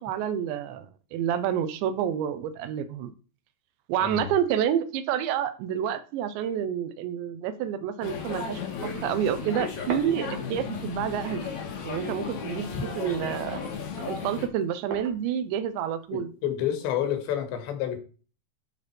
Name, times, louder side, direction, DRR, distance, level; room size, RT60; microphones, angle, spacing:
voice 1, 0.0-3.1 3.9-11.5 11.8-12.7 13.0-13.6 14.0-16.3, right 9 dB, 80° right, 10 dB, 3.2 m, -29 dB
sound 1, 8.0-14.5, left 5 dB, 60° left, 2.1 m, -35 dB
sound 2, 9.9-11.0 11.3-17.2, right 4 dB, 60° right, 1.9 m, -44 dB
voice 2, 16.1-18.0, left 10 dB, 80° left, 7 dB, 3.8 m, -29 dB
11.5 x 5.2 x 4.6 m, 0.37 s
omnidirectional pair, 5.1 m